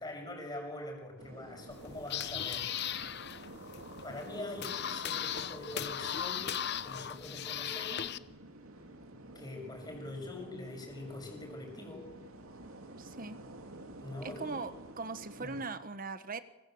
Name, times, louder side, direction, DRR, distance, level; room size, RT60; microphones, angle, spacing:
voice 1, 0.0-2.7 4.0-6.5 6.8-8.2 9.4-12.1 14.0-14.6 15.4-15.6, left 2 dB, 20° left, 2 dB, 6.8 m, -44 dB
sound 1, 1.2-15.7, right 1 dB, 80° right, 2.7 m, -50 dB
sound 2, 1.7-8.2, left 9 dB, 55° left, 0.8 m, -38 dB
voice 2, 13.0-13.4 14.2-16.4, right 3 dB, 40° right, 11 dB, 1.4 m, -40 dB
26.0 x 24.0 x 8.0 m, 1.1 s
head